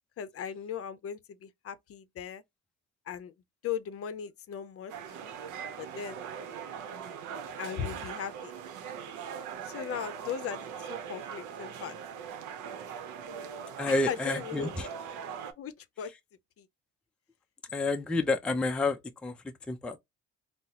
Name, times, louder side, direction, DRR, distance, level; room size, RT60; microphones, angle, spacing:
voice 1, 0.2-2.4 3.1-3.3 3.6-4.9 5.8-6.2 7.6-8.5 9.6-11.9 14.1-14.9 15.6-16.1 16.6-16.7, left 8 dB, 50° left, 0.6 m, -38 dB
sound 1, 4.9-15.5, right 7 dB, 85° right, 0.7 m, -41 dB
voice 2, 13.8-14.9 17.7-20.0, left 2 dB, 5° left, 0.4 m, -30 dB
3.9 x 2.0 x 2.8 m
cardioid pair, 100°, 30 cm